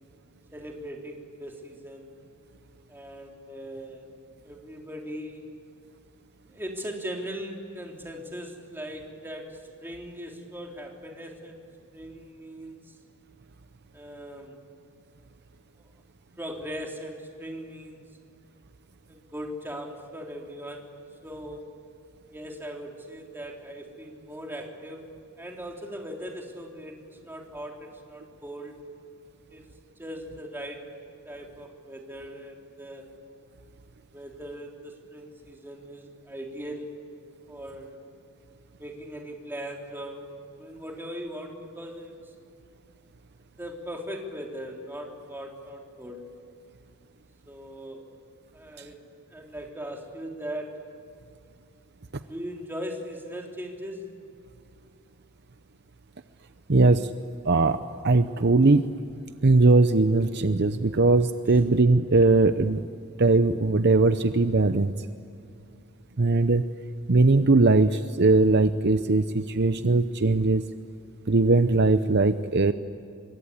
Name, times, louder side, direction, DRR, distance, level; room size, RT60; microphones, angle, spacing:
voice 1, 0.5-2.1 2.9-4.1 4.4-5.5 6.4-11.6 11.9-12.8 13.9-14.6 16.4-18.1 19.1-20.9 21.2-21.6 22.3-25.1 25.4-28.8 29.5-29.7 30.0-30.9 31.3-33.1 34.1-36.9 37.5-38.0 38.8-42.2 43.6-46.3 47.5-48.1 48.5-49.0 49.3-50.9 52.3-54.1, equal, 10° right, 0 dB, 3.6 m, -39 dB
voice 2, 56.7-57.1 57.4-58.9 59.4-62.8 63.2-64.9 66.2-66.6 67.1-70.7 71.3-72.7, right 3 dB, 50° right, 10 dB, 0.7 m, -20 dB
26.0 x 22.5 x 9.8 m, 2.5 s
head